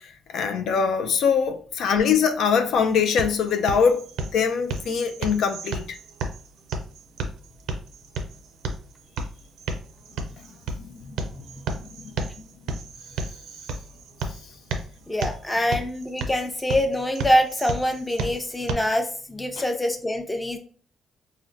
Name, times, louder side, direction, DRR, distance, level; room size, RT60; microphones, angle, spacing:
voice 1, 0.3-4.0 4.3-6.0 15.5-15.7 19.6-19.7, left 6 dB, 75° left, 0.3 m, -22 dB
sound 1, 2.7-18.7, right 3 dB, 90° right, 0.5 m, -33 dB
voice 2, 15.1-20.6, equal, 10° left, 0.5 m, -25 dB
3.6 x 2.1 x 2.5 m
cardioid pair, 90°, 0 cm